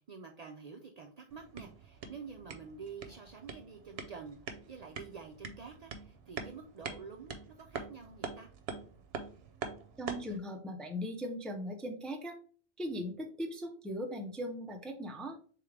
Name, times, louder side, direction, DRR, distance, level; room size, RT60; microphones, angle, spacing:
voice 1, 0.0-8.5, right 5 dB, 55° right, 2 dB, 0.5 m, -48 dB
sound 1, 1.3-10.4, right 5 dB, 75° right, 0.9 m, -45 dB
voice 2, 10.0-12.4 12.8-15.4, equal, ahead, 3 dB, 0.4 m, -39 dB
3.7 x 3.6 x 3.2 m, 0.43 s
omnidirectional pair, 1.0 m